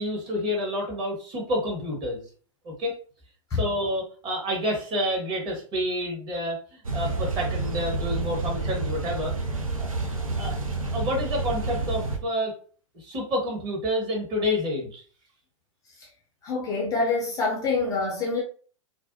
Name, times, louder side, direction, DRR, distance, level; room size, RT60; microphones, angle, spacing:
voice 1, 0.0-2.2 2.6-3.0 3.5-9.3 9.8-9.9 10.4-10.6 10.9-12.5 12.9-15.0, left 1 dB, 25° right, 0.9 m, -29 dB
sound 1, 6.8-12.2, right 3 dB, 85° right, 0.6 m, -29 dB
voice 2, 16.4-18.4, left 3 dB, 20° left, 0.4 m, -26 dB
2.4 x 2.1 x 2.5 m
figure-of-eight pair, 105°, 17 cm